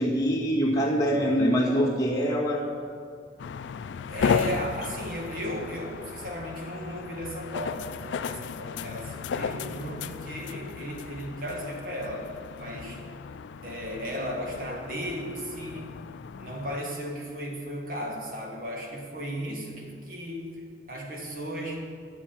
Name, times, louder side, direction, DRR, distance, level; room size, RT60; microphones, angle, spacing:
voice 1, 0.0-2.7, equal, 20° left, -4 dB, 1.8 m, -24 dB
sound 1, 3.4-16.8, left 6 dB, 90° left, 0.3 m, -35 dB
voice 2, 4.1-12.3 12.6-13.0 13.6-16.0 16.4-21.8, equal, 50° right, 0 dB, 1.8 m, -35 dB
11.5 x 7.4 x 5.8 m, 2.1 s
head